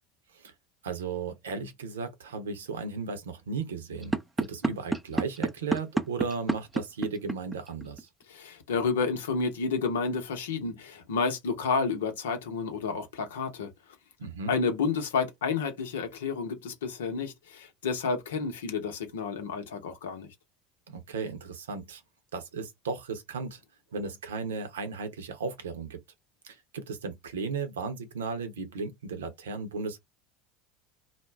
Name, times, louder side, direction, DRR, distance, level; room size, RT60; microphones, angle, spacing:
voice 1, 0.8-8.1 14.2-14.5 20.9-22.0 22.3-23.6 23.9-26.0 26.4-30.0, right 4 dB, 80° right, 0.8 m, -35 dB
sound 1, 4.0-8.0, right 2 dB, 10° right, 0.5 m, -28 dB
voice 2, 8.3-13.7 14.5-20.3, left 5 dB, 80° left, 0.8 m, -30 dB
2.5 x 2.2 x 3.2 m
hypercardioid pair, 80°, 0 cm